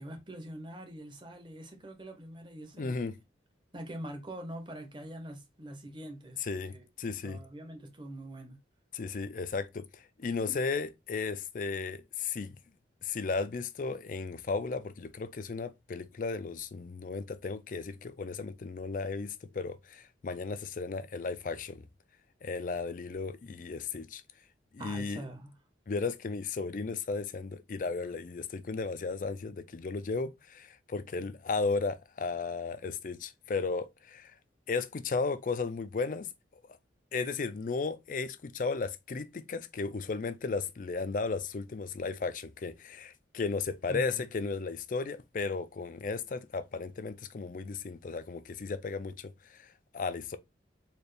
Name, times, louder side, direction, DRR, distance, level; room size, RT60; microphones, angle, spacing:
voice 1, 0.0-3.2 3.7-6.4 6.7-6.9 7.2-8.6 10.5-10.6 24.8-25.5 43.9-44.2, right 1 dB, 25° right, 0.8 m, -44 dB
voice 2, 2.8-3.1 6.4-7.4 8.9-12.6 13.0-21.9 22.4-24.2 24.7-25.2 25.9-34.3 34.7-36.3 37.1-50.4, left 4 dB, 45° left, 0.4 m, -35 dB
4.3 x 2.4 x 3.3 m
head